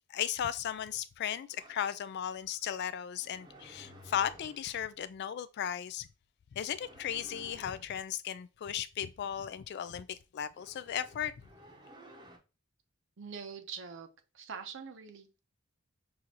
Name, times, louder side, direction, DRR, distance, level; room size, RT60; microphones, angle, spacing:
voice 1, 0.1-6.1 6.5-11.3, left 9 dB, 50° left, 0.3 m, -36 dB
sound 1, 1.5-1.9 3.2-4.8 6.7-7.9 10.6-12.4, equal, 20° right, 0.8 m, -54 dB
voice 2, 13.2-14.1 14.3-15.4, right 6 dB, 60° right, 0.7 m, -44 dB
6.2 x 2.5 x 2.8 m
head